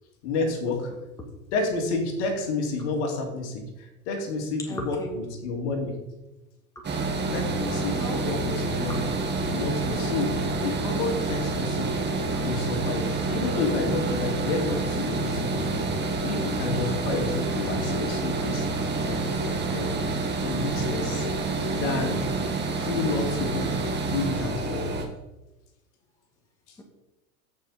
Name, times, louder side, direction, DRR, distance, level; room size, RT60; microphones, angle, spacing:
voice 1, 0.2-0.9 1.5-6.1 7.3-9.1 9.5-12.0 12.4-15.9 16.2-18.7 19.0-20.0 20.4-21.3 21.8-22.3 22.7-23.8 24.1-24.9, left 3 dB, 55° left, 3 dB, 2.6 m, -30 dB
voice 2, 4.7-5.2 6.8-7.2 7.9-8.3 9.0-9.2, equal, 10° left, 0 dB, 2.2 m, -36 dB
sound 1, 6.8-25.1, right 3 dB, 25° right, 1.8 m, -28 dB
15.0 x 5.8 x 4.3 m, 1.0 s
hypercardioid pair, 100°, 42 cm